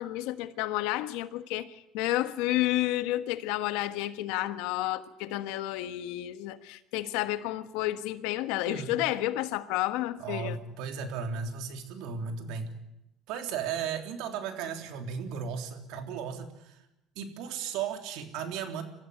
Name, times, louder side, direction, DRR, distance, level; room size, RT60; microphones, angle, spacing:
voice 1, 0.0-10.6, left 15 dB, 90° left, 1.3 m, -31 dB
voice 2, 10.2-12.7 13.3-16.8 17.1-18.8, right 6 dB, 80° right, 3.4 m, -35 dB
24.5 x 15.0 x 9.9 m
cardioid pair, 130°, 0 cm